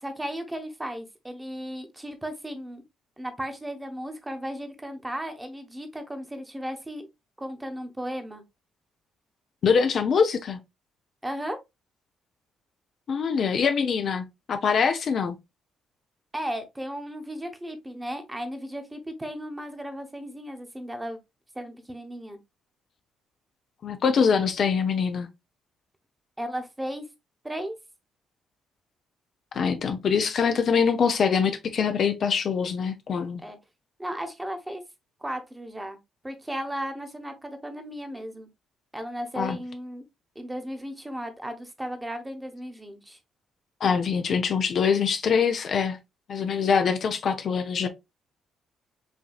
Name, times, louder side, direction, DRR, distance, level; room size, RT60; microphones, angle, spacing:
voice 1, 0.0-2.8 3.2-7.1 7.4-8.4 11.2-11.6 16.3-21.2 21.5-22.4 26.4-27.0 27.4-27.7 33.4-33.6 34.0-34.8 35.2-36.0 36.2-38.5 38.9-40.0 40.3-43.2, equal, 15° right, 1.2 m, -35 dB
voice 2, 9.6-10.6 13.1-15.4 23.8-25.3 29.5-33.4 39.4-39.6 43.8-46.0 46.3-47.9, left 6 dB, 55° left, 0.6 m, -24 dB
5.7 x 2.7 x 2.4 m
hypercardioid pair, 45°, 0 cm